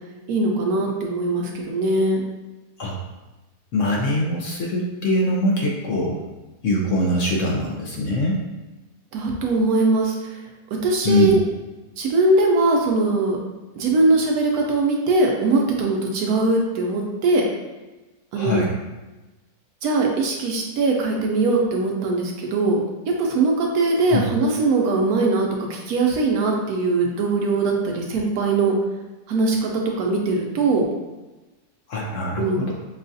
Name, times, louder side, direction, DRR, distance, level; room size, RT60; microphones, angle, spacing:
voice 1, 0.3-2.2 9.1-10.2 10.8-11.4 12.0-13.4 13.8-17.4 18.3-18.6 19.8-28.7 29.3-29.7 30.0-30.9 32.4-32.6, right 3 dB, 70° right, 0 dB, 1.0 m, -21 dB
voice 2, 3.7-6.2 6.6-8.4 11.0-11.3 18.3-18.7 24.1-24.3 31.9-32.7, left 1 dB, 65° left, -2 dB, 0.8 m, -22 dB
5.4 x 2.3 x 2.6 m, 1.1 s
omnidirectional pair, 1.7 m